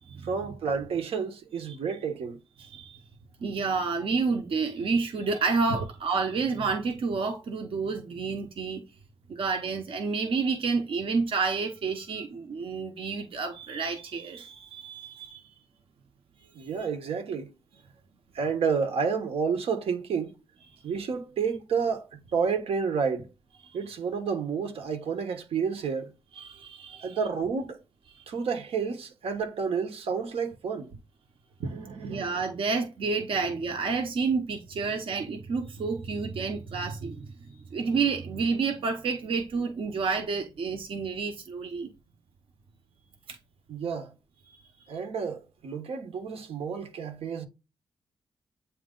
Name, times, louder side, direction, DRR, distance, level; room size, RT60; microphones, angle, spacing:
voice 1, 0.2-2.4 16.5-17.5 18.3-20.4 20.8-23.3 23.7-26.1 27.0-27.8 28.3-31.0 31.6-32.3 43.7-44.1 44.9-47.5, right 6 dB, 85° right, 1.2 m, -30 dB
voice 2, 2.6-3.0 3.4-8.8 9.3-15.5 16.6-16.7 26.4-27.2 28.1-28.2 32.0-41.9 43.3-43.4, right 4 dB, 65° right, 1.0 m, -30 dB
8.6 x 3.0 x 3.8 m
wide cardioid pair, 155°, 10 cm